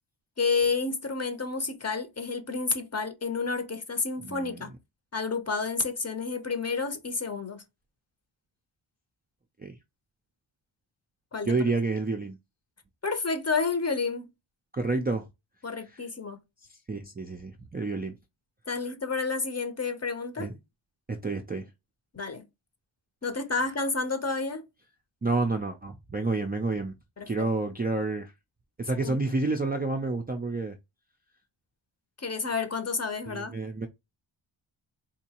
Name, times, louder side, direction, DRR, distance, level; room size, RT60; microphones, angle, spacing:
voice 1, 0.4-4.7 5.1-7.6 11.3-11.6 13.0-14.3 15.6-16.4 18.7-20.5 22.1-22.4 23.2-24.6 27.2-27.5 29.0-29.2 32.2-33.5, left 4 dB, 30° left, 0.7 m, -30 dB
voice 2, 4.2-4.6 9.6-9.7 11.5-12.4 14.7-15.3 16.9-18.1 20.4-20.5 21.1-21.6 25.2-26.9 27.3-28.3 28.8-30.8 33.3-33.9, right 3 dB, 20° right, 0.3 m, -29 dB
3.9 x 2.6 x 2.8 m
wide cardioid pair, 120°, 49 cm